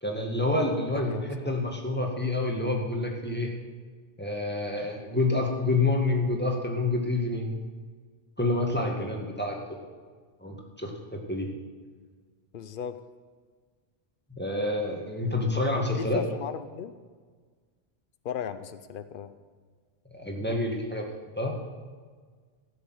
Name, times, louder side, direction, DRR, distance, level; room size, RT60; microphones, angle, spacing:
voice 1, 0.0-3.5 4.2-7.6 8.4-9.6 10.4-11.5 14.4-16.2 20.1-21.1 21.4-21.5, left 2 dB, 10° left, 0 dB, 2.0 m, -28 dB
voice 2, 0.9-1.5 12.5-13.0 15.9-16.9 18.2-19.3, left 8 dB, 60° left, 12 dB, 0.9 m, -37 dB
16.5 x 6.9 x 7.9 m, 1.6 s
omnidirectional pair, 1.0 m